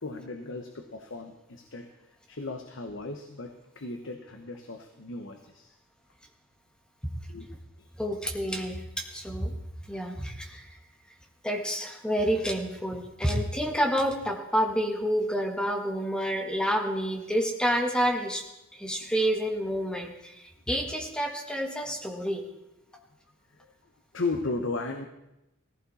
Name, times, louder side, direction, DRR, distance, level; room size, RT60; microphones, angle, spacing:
voice 1, 0.0-5.7 7.3-7.5 7.8-7.9 19.0-19.1 22.9-23.1 23.5-23.7 24.1-25.1, left 3 dB, 60° left, 6 dB, 1.1 m, -36 dB
voice 2, 8.0-9.5 9.9-10.7 11.4-18.4 18.7-22.4, equal, 5° left, 3 dB, 1.6 m, -29 dB
17.0 x 15.0 x 4.2 m, 0.90 s
head